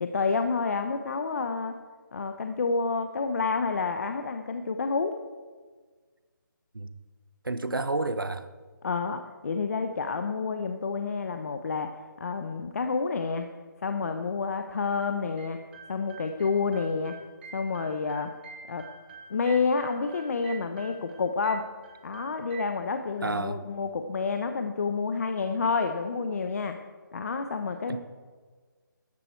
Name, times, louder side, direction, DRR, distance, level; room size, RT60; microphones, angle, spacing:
voice 1, 0.0-1.8 2.1-5.2 8.8-13.5 13.8-15.6 15.9-17.2 17.5-18.3 18.7-18.9 19.3-21.7 22.0-26.8 27.1-28.0, left 4 dB, 50° left, 7 dB, 0.8 m, -29 dB
voice 2, 7.4-8.5 23.2-23.6 27.9-28.0, right 2 dB, 90° right, 11 dB, 1.1 m, -30 dB
sound 1, 15.4-22.6, right 5 dB, 30° right, 1.5 m, -48 dB
13.5 x 11.0 x 4.5 m, 1.4 s
figure-of-eight pair, 155°, 11 cm